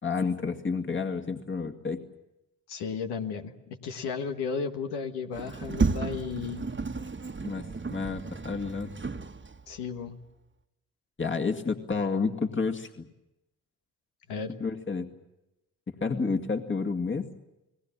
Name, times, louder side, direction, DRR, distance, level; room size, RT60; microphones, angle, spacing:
voice 1, 0.0-2.0 7.4-8.9 11.2-13.1 14.6-15.1 16.0-17.3, left 4 dB, 30° left, 4 dB, 2.1 m, -30 dB
voice 2, 2.7-6.7 9.7-10.2 14.3-14.6, left 5 dB, 85° left, 5 dB, 1.5 m, -34 dB
Sliding door, 5.3-9.8, right 4 dB, 30° right, 1.4 m, -32 dB
30.0 x 19.5 x 7.3 m, 0.95 s
hypercardioid pair, 45°, 39 cm